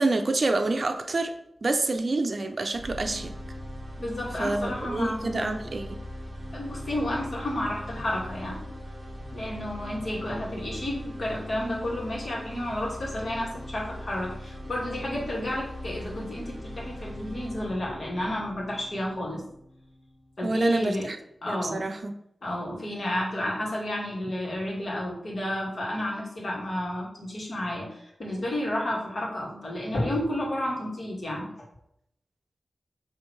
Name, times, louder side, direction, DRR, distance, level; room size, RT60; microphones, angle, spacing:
voice 1, 0.0-1.3 1.6-3.3 4.4-5.9 20.4-21.2 21.5-22.2, right 2 dB, 50° right, 6 dB, 0.5 m, -27 dB
sound 1, 2.7-20.7, equal, 15° right, 1.4 m, -40 dB
voice 2, 4.0-5.5 6.5-8.6 9.3-19.4 20.4-21.1 21.4-21.9 22.4-31.5, left 1 dB, 55° left, -3 dB, 2.2 m, -31 dB
6.3 x 3.4 x 4.7 m, 0.75 s
wide cardioid pair, 85°, 0 cm